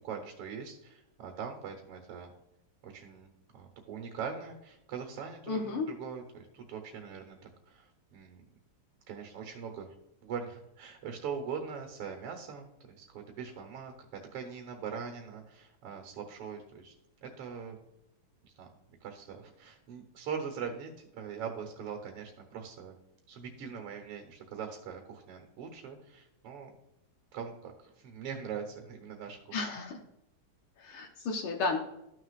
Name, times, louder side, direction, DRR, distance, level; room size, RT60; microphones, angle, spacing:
voice 1, 0.0-2.3 2.8-7.4 7.7-8.4 9.1-9.9 10.2-14.1 14.3-16.9 17.2-17.8 18.4-18.7 19.0-23.0 23.3-26.7 27.3-29.6, right 6 dB, 90° right, 3 dB, 2.1 m, -42 dB
voice 2, 5.5-5.9 29.5-30.0 30.8-31.8, left 3 dB, 75° left, 2 dB, 1.8 m, -33 dB
13.5 x 6.5 x 2.4 m, 0.86 s
omnidirectional pair, 2.4 m